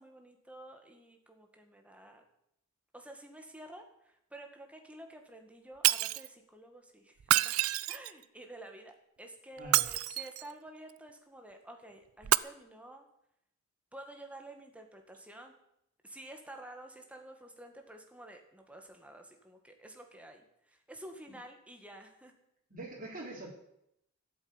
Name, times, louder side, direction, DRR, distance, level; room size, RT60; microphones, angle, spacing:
voice 1, 0.0-2.2 2.9-7.5 7.9-13.1 13.9-15.5 16.0-22.3, right 1 dB, 5° right, 4 dB, 1.9 m, -50 dB
Shatter, 5.8-6.3 7.2-8.2 9.6-10.5 12.2-12.4, right 14 dB, 80° right, 0.4 m, -27 dB
voice 2, 22.7-23.5, right 2 dB, 40° right, -1 dB, 4.0 m, -43 dB
12.5 x 8.6 x 9.0 m, 0.77 s
head